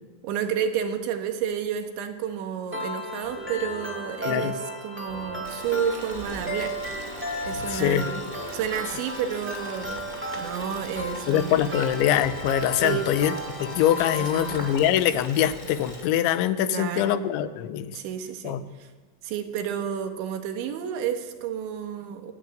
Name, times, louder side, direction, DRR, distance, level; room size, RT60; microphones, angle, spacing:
voice 1, 0.2-6.7 7.4-8.2 8.5-10.0 10.4-11.6 12.8-13.1 14.1-14.7 16.7-17.2 17.9-18.9 19.2-22.3, right 8 dB, 85° right, 6 dB, 4.0 m, -31 dB
sound 1, 2.7-14.7, equal, 5° right, 1.5 m, -35 dB
sound 2, 3.2-14.7, right 1 dB, 35° left, 4.2 m, -44 dB
Boiling, 5.4-16.0, left 1 dB, 15° left, 2.0 m, -42 dB
voice 2, 7.7-8.1 11.3-13.3 13.6-18.0 18.4-18.6, left 11 dB, 90° left, 12 dB, 3.3 m, -23 dB
27.5 x 11.5 x 9.2 m, 1.3 s
omnidirectional pair, 5.2 m